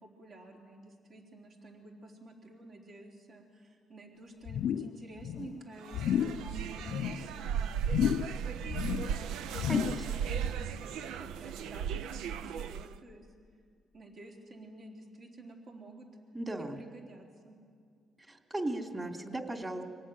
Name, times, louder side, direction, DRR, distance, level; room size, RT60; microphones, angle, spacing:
voice 1, 0.0-13.3 13.9-16.1 16.8-17.6, right 2 dB, 55° right, 0 dB, 3.7 m, -50 dB
sound 1, 4.5-5.0 5.2-5.6 5.9-6.4 6.8-7.2 7.8-8.4 8.6-9.2 9.5-10.1 10.4-10.5, left 9 dB, 70° left, 0.5 m, -32 dB
sound 2, 5.8-13.0, right 8 dB, 90° right, 0.6 m, -36 dB
voice 2, 9.7-10.0 16.3-16.8 18.3-19.8, right 2 dB, 25° right, 3 dB, 3.2 m, -36 dB
25.5 x 19.0 x 9.2 m, 2.1 s
cardioid pair, 90°, 0 cm